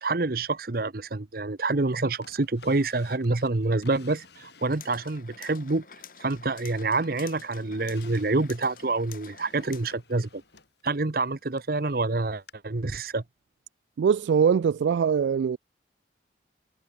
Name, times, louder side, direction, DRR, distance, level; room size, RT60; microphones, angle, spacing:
voice 1, 0.0-5.9 6.2-10.4 10.8-13.2, right 3 dB, 50° right, 0.9 m, -27 dB
Drawer open or close, 2.2-5.1 5.6-6.7 7.0-11.7 12.5-12.6, left 4 dB, 65° left, 5.1 m, -54 dB
sound 1, 4.6-9.9, left 7 dB, 50° left, 3.8 m, -48 dB
voice 2, 14.0-15.6, right 7 dB, 75° right, 0.3 m, -22 dB
head